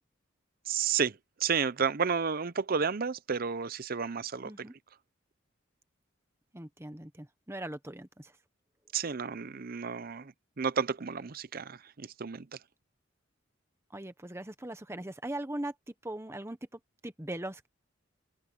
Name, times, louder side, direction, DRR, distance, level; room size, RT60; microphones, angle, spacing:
voice 1, 0.7-4.7 8.9-12.6, right 6 dB, 45° right, 0.6 m, -32 dB
voice 2, 6.5-8.4 13.9-17.7, right 1 dB, 15° right, 1.1 m, -40 dB
open air
head